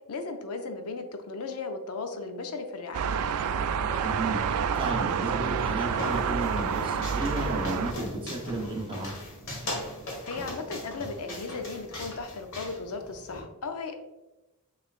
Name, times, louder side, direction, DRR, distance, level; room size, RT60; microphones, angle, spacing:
voice 1, 0.1-3.1 10.2-13.9, left 3 dB, 80° left, 6 dB, 0.6 m, -36 dB
sound 1, 2.9-7.9, right 6 dB, 80° right, 0.3 m, -28 dB
voice 2, 4.0-9.1, right 2 dB, 25° right, 0 dB, 0.8 m, -33 dB
sound 2, 5.2-13.4, left 1 dB, 65° left, 1.5 m, -39 dB
6.1 x 3.3 x 2.4 m, 1.0 s
head